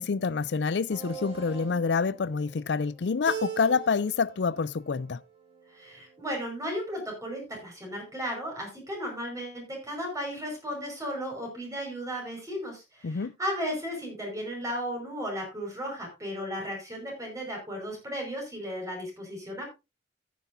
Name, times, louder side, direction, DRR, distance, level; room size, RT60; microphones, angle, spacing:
voice 1, 0.0-5.2 13.0-13.3, left 5 dB, 75° left, 0.5 m, -27 dB
sound 1, 0.9-6.2, right 5 dB, 35° right, 4.2 m, -48 dB
Keyboard (musical), 3.3-4.4 4.7-5.4, right 7 dB, 75° right, 1.8 m, -38 dB
voice 2, 5.7-19.7, equal, 20° right, 5.2 m, -35 dB
14.0 x 9.4 x 2.6 m
head